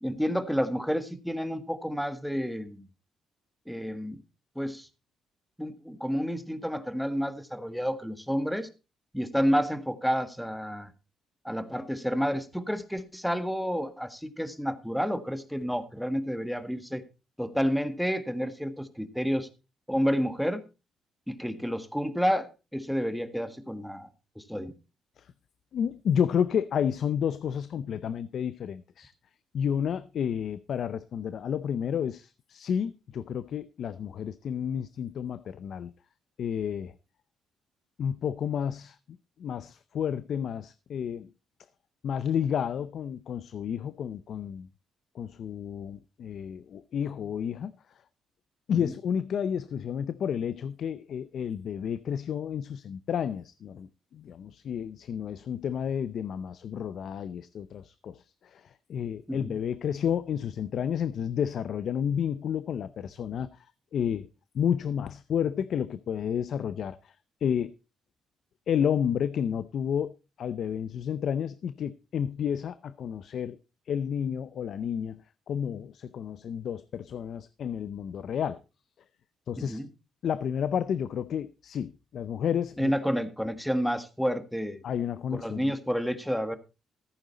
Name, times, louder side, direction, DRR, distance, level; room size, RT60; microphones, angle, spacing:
voice 1, 0.0-2.9 3.7-4.2 4.5-4.9 5.6-8.7 9.1-10.9 11.4-17.0 17.4-19.5 19.9-20.6 21.3-24.1 24.3-24.7 48.7-48.9 59.3-59.5 79.6-79.9 82.8-84.8 85.3-86.6, equal, ahead, 1.6 m, -30 dB
voice 2, 25.7-29.1 29.5-35.9 36.4-36.9 38.0-39.0 39.4-41.3 42.0-44.7 45.1-47.7 48.7-63.7 63.9-64.3 64.5-67.1 67.4-67.7 68.7-70.1 70.4-73.6 73.9-75.2 75.5-78.6 79.5-79.8 80.2-82.9 84.8-85.7, left 8 dB, 65° left, 0.6 m, -31 dB
14.5 x 9.0 x 4.1 m
cardioid pair, 90°, 0 cm